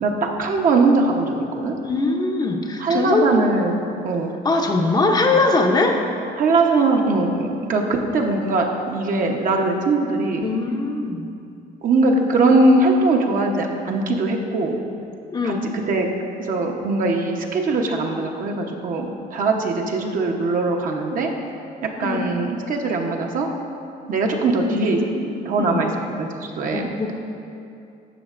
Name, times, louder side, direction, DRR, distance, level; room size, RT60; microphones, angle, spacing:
voice 1, 0.0-1.8 2.8-3.8 4.0-4.3 6.4-10.5 11.8-14.8 15.4-15.5 15.9-16.1 16.4-21.3 22.0-23.5 24.1-25.0 25.4-25.9 26.2-26.9, right 3 dB, 55° right, 1 dB, 0.9 m, -21 dB
voice 2, 1.8-3.4 4.4-6.0 10.4-11.3 15.3-15.7 22.0-22.3 24.5-25.9 26.7-27.2, left 3 dB, 25° left, 2 dB, 0.7 m, -22 dB
12.0 x 7.1 x 2.5 m, 2.6 s
cardioid pair, 110°, 17 cm